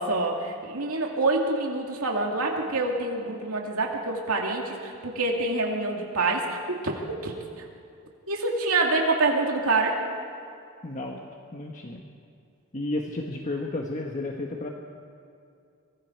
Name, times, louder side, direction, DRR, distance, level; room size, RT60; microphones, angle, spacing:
voice 1, 0.0-7.6 8.3-10.0, right 2 dB, 80° right, 0 dB, 2.5 m, -26 dB
voice 2, 10.8-11.2 11.5-12.0 12.7-14.7, left 2 dB, 35° left, 1 dB, 1.3 m, -32 dB
25.0 x 22.5 x 4.6 m, 2.5 s
head